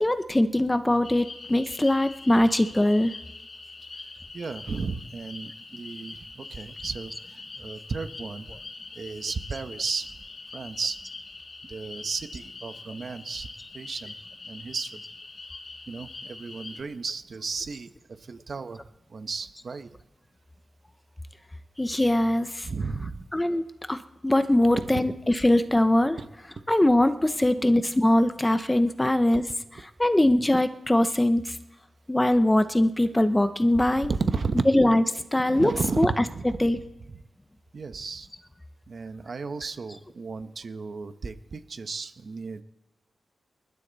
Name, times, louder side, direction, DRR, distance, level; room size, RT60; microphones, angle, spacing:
voice 1, 0.0-3.1 21.8-22.7 23.3-24.0 24.2-26.2 26.7-29.4 29.7-31.5 32.1-34.1 34.7-35.0 35.3-35.7 36.0-36.1 36.6-36.8, left 1 dB, 10° left, 10 dB, 0.8 m, -22 dB
sound 1, 1.0-16.8, left 3 dB, 45° left, 2.1 m, -43 dB
voice 2, 4.3-8.5 8.9-10.1 10.5-11.0 11.6-13.5 13.7-14.1 14.5-15.0 15.9-18.8 19.1-19.9 22.6-23.2 24.6-25.0 26.2-26.3 27.4-27.8 30.2-30.5 34.0-34.7 35.5-36.8 37.1-37.2 37.7-38.3 38.9-42.6, right 4 dB, 50° right, 10 dB, 1.1 m, -34 dB
27.5 x 12.0 x 4.1 m, 1.1 s
wide cardioid pair, 105°, 0 cm